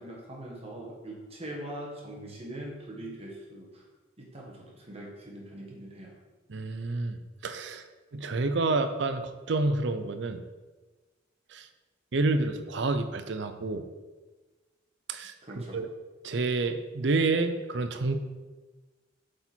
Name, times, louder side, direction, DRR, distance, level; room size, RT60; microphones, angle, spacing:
voice 1, 0.0-3.8 4.2-6.1 15.4-15.8, right 1 dB, 30° right, -2 dB, 1.5 m, -42 dB
voice 2, 6.5-7.2 7.4-7.8 8.1-9.2 9.5-10.4 11.5-11.7 12.1-13.8 15.1-15.9 16.2-18.2, right 3 dB, 65° right, 9 dB, 0.6 m, -28 dB
7.8 x 4.3 x 4.4 m, 1.3 s
head